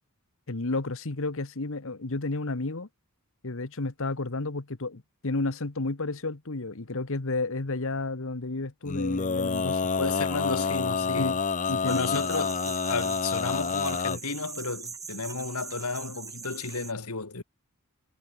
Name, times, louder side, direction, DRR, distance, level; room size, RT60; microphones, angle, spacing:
voice 1, 0.5-2.9 3.4-9.9 11.2-11.4 11.7-12.2, left 2 dB, 65° left, 1.3 m, -31 dB
Male singing, 8.8-14.2, left 5 dB, 35° left, 0.8 m, -28 dB
voice 2, 10.0-11.3 11.9-17.4, left 4 dB, 85° left, 2.2 m, -32 dB
sound 1, 11.9-16.9, right 5 dB, 15° right, 2.2 m, -41 dB
head